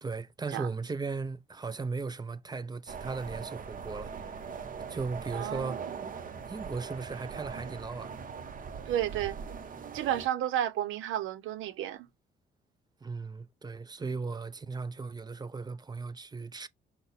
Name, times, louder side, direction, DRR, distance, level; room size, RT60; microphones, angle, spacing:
voice 1, 0.0-4.1 4.9-5.9 6.5-8.1 13.0-16.7, right 4 dB, 20° right, 0.5 m, -37 dB
sound 1, 2.9-10.3, right 6 dB, 45° right, 0.9 m, -41 dB
voice 2, 5.3-5.8 8.9-9.4 9.9-12.1, right 11 dB, 85° right, 0.7 m, -32 dB
5.8 x 2.2 x 4.0 m
cardioid pair, 90°, 20 cm